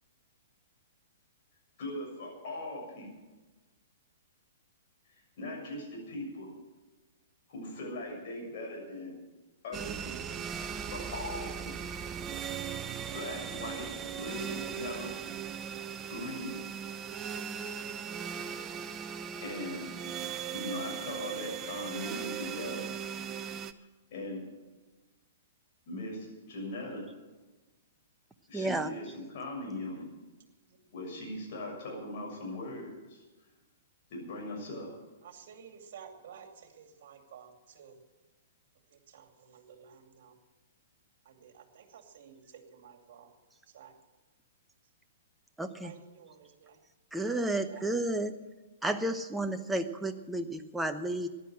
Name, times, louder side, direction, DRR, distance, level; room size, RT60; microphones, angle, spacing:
voice 1, 1.8-3.1 5.1-6.5 7.5-9.2 9.6-10.2 10.9-11.8 13.1-15.1 16.1-16.6 19.0-19.9 20.5-22.9 24.1-24.4 25.9-27.1 28.5-30.1 30.9-33.2 34.1-34.9, left 1 dB, 50° left, 0 dB, 6.8 m, -40 dB
sound 1, 9.7-23.7, right 8 dB, 25° right, 0.7 m, -38 dB
voice 2, 28.5-28.9 45.6-45.9 47.1-48.4 48.8-51.3, right 1 dB, 5° right, 7 dB, 1.0 m, -32 dB
voice 3, 35.2-38.0 38.9-40.4 41.2-43.3 43.7-44.0 45.8-46.8 47.7-47.9, right 7 dB, 50° right, 5 dB, 2.6 m, -53 dB
15.0 x 10.5 x 7.7 m, 1.2 s
figure-of-eight pair, 110°, 0 cm